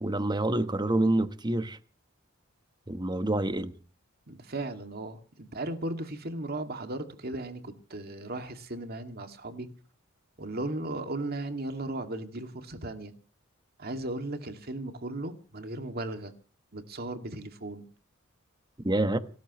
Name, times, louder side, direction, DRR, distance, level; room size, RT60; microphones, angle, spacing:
voice 1, 0.0-1.8 2.9-3.7 18.8-19.2, right 1 dB, 20° right, 1.2 m, -27 dB
voice 2, 4.3-9.7 10.4-13.1 13.8-16.3 16.7-17.9, right 2 dB, 50° right, 2.2 m, -36 dB
29.5 x 14.0 x 3.1 m
head